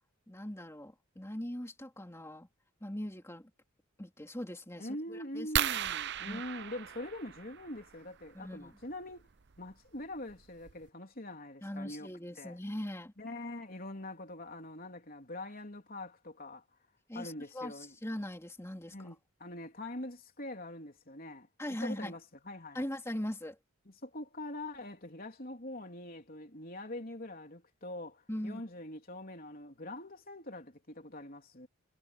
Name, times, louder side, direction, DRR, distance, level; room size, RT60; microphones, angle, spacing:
voice 1, 0.3-2.5 2.8-3.5 4.0-5.5 6.3-6.4 8.3-8.7 11.6-13.1 17.1-19.1 21.6-22.1 22.7-23.6 28.3-28.6, left 1 dB, 10° left, 2.8 m, -40 dB
voice 2, 4.8-9.3 9.6-12.1 12.4-12.6 13.2-16.6 17.2-18.0 18.9-21.5 21.8-22.9 23.9-31.7, left 1 dB, 40° left, 3.6 m, -44 dB
sound 1, 5.6-7.9 9.5-9.7 10.3-10.4 10.7-10.9, right 9 dB, 55° right, 0.7 m, -35 dB
head